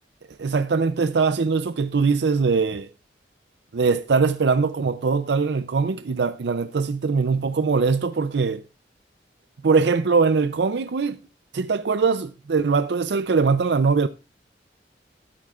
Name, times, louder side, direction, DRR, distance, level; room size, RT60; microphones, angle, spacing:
voice 1, 0.4-2.9 3.7-8.6 9.6-11.2 11.5-14.1, right 4 dB, 75° right, 0.5 m, -21 dB
13.5 x 13.0 x 2.4 m
head